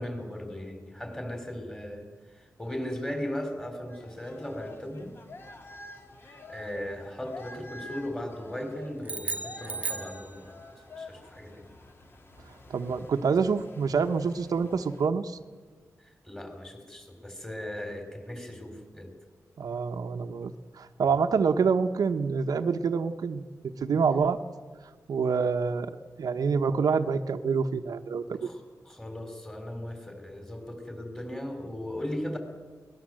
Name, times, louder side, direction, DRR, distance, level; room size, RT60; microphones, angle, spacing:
voice 1, 0.0-2.0 2.4-5.2 6.2-11.7 16.3-19.1 28.4-32.4, left 1 dB, 10° left, 5 dB, 4.0 m, -37 dB
sound 1, 3.9-15.1, left 2 dB, 40° left, 2.6 m, -48 dB
sound 2, 9.0-10.8, right 3 dB, 25° right, 1.2 m, -35 dB
voice 2, 12.7-15.4 19.6-23.4 23.8-24.4 25.1-28.5, right 5 dB, 85° right, 6 dB, 1.1 m, -27 dB
23.0 x 19.5 x 7.7 m, 1.5 s
wide cardioid pair, 150°, 6 cm